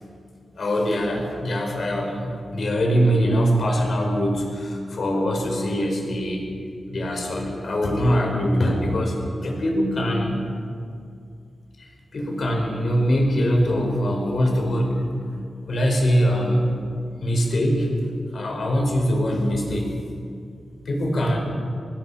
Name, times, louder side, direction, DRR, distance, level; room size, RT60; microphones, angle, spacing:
voice 1, 0.6-6.5 6.9-9.2 9.4-10.4 11.8-15.0 15.7-16.7 17.2-17.9 18.3-20.0 20.9-21.4, equal, 55° left, 1 dB, 5.2 m, -22 dB
26.0 x 19.5 x 5.9 m, 2.3 s
wide cardioid pair, 130°, 0 cm